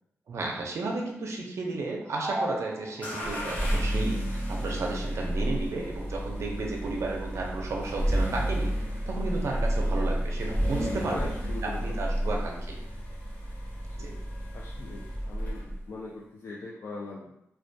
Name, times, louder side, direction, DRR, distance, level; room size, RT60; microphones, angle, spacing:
voice 1, 0.3-8.7 9.1-11.3 11.6-12.8 14.0-14.2, right 3 dB, 65° right, 0 dB, 0.5 m, -33 dB
sound 1, 2.1-3.5, right 1 dB, 15° right, 0.5 m, -35 dB
sound 2, 3.0-15.9, equal, 30° left, 0.8 m, -31 dB
voice 2, 10.8-11.8 12.2-12.4 14.0-14.1 14.5-17.3, left 3 dB, 55° left, -3 dB, 0.3 m, -41 dB
2.2 x 2.2 x 2.6 m, 0.79 s
wide cardioid pair, 105°, 5 cm